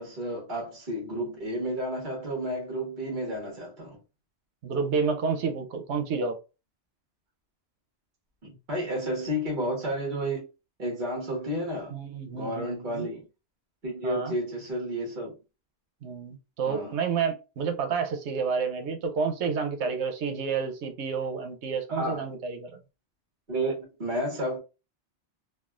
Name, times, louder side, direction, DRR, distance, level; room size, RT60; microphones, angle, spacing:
voice 1, 0.0-4.0 8.4-10.4 10.8-11.9 12.3-13.2 13.8-15.3 16.7-17.0 21.9-22.3 23.5-24.6, equal, 45° right, 1.2 m, -31 dB
voice 2, 4.6-6.4 11.9-13.1 14.0-14.3 16.0-22.8, right 5 dB, 80° right, 0.9 m, -30 dB
3.5 x 2.1 x 2.3 m
omnidirectional pair, 1.1 m